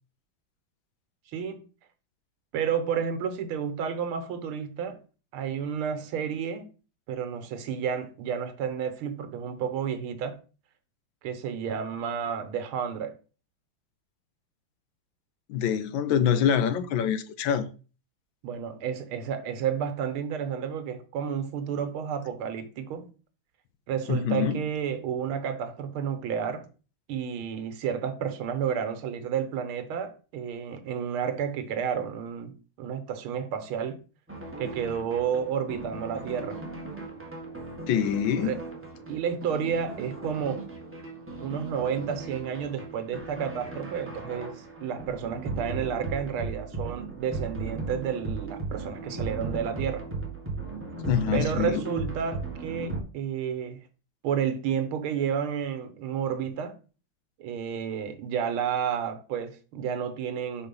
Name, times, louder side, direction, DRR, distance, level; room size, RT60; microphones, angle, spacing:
voice 1, 1.3-1.7 2.5-5.0 5.3-6.7 7.1-10.4 11.2-13.2 18.4-23.1 23.9-26.7 27.1-34.0 34.6-36.6 38.4-38.6 39.1-40.7 41.4-50.1 51.3-53.8 54.2-56.8 57.4-60.7, right 7 dB, 85° right, 1.8 m, -31 dB
voice 2, 15.5-17.7 24.1-24.6 37.9-38.6 51.0-51.8, left 8 dB, 75° left, 1.4 m, -25 dB
sound 1, 34.3-53.0, right 3 dB, 10° right, 1.1 m, -37 dB
5.0 x 4.7 x 5.3 m
omnidirectional pair, 2.3 m